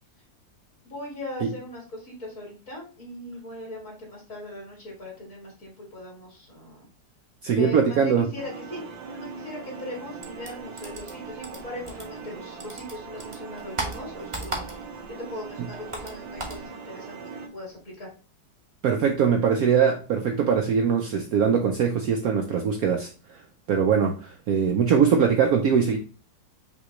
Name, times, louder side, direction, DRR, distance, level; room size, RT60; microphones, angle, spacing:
voice 1, 0.8-6.9 7.5-8.8 9.1-14.7 15.2-18.1, left 1 dB, 45° left, 2.6 m, -39 dB
voice 2, 7.4-8.3 18.8-23.1 23.7-26.0, right 7 dB, 70° right, 0.9 m, -22 dB
sound 1, 8.4-17.5, right 5 dB, 85° right, 1.6 m, -41 dB
sound 2, 10.2-12.3 12.6-15.1 15.4-16.6, right 2 dB, 20° right, 0.8 m, -35 dB
5.6 x 3.2 x 3.0 m
omnidirectional pair, 2.0 m